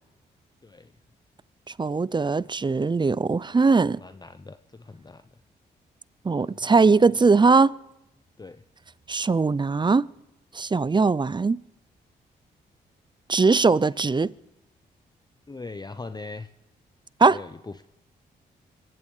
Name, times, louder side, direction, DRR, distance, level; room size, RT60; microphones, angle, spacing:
voice 1, 1.8-4.0 6.2-7.7 9.1-10.1 10.5-11.6 13.3-14.3 17.2-17.4, right 4 dB, 20° right, 0.5 m, -20 dB
voice 2, 3.7-5.2 6.5-6.7 7.2-7.3 8.4-8.6 15.5-16.5 17.3-17.8, left 3 dB, 20° left, 0.7 m, -41 dB
26.0 x 15.5 x 3.3 m
hypercardioid pair, 40°, 21 cm